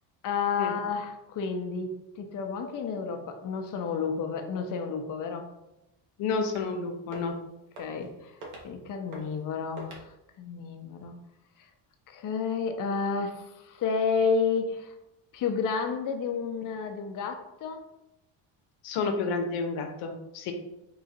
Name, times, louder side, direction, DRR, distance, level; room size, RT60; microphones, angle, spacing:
voice 1, 0.2-5.5 7.8-8.4 8.6-11.1 11.6-11.7 12.1-15.0 15.3-17.9, left 5 dB, 40° left, 5 dB, 0.6 m, -31 dB
voice 2, 6.2-7.3 18.8-20.5, left 4 dB, 90° left, 5 dB, 0.8 m, -30 dB
sound 1, 6.5-6.8 7.0-7.4 7.8-8.1 8.4-8.7 9.1-9.4 9.8-10.0, right 2 dB, 75° right, 1.1 m, -44 dB
3.8 x 2.4 x 4.1 m, 0.90 s
cardioid pair, 105°, 49 cm